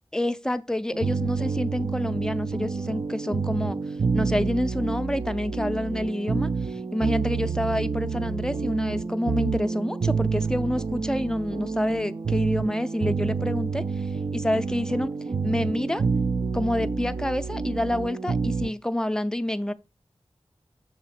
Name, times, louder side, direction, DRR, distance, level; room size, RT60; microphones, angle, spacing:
voice 1, 0.1-3.8 4.1-14.1 14.3-15.1 15.4-16.0 16.5-19.7, left 1 dB, 5° left, 0.4 m, -28 dB
sound 1, 0.9-18.7, right 5 dB, 50° right, 0.4 m, -28 dB
6.8 x 2.8 x 5.8 m
wide cardioid pair, 75°, 10 cm